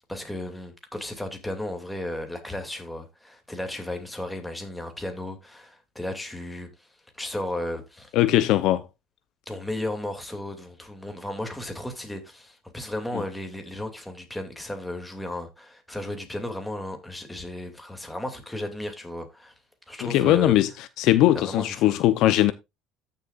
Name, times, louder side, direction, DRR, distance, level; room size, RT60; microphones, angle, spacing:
voice 1, 0.1-6.9 7.1-8.1 9.5-19.5 19.9-20.6 21.3-22.0, left 1 dB, 5° left, 2.6 m, -34 dB
voice 2, 8.1-8.9 13.1-13.2 20.0-20.7 21.0-22.5, left 14 dB, 65° left, 0.7 m, -20 dB
14.0 x 6.9 x 2.5 m
cardioid pair, 125°, 0 cm